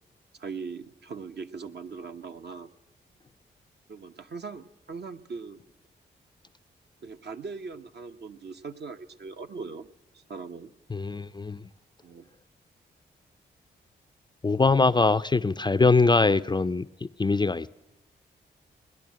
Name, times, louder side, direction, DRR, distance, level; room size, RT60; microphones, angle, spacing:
voice 1, 0.4-2.7 3.9-5.6 7.0-9.9 10.1-10.7 12.0-12.3, right 5 dB, 55° right, 1.0 m, -40 dB
voice 2, 10.9-11.6 14.4-17.7, left 3 dB, 20° left, 0.5 m, -23 dB
17.5 x 10.5 x 7.5 m
supercardioid pair, 40°, 21 cm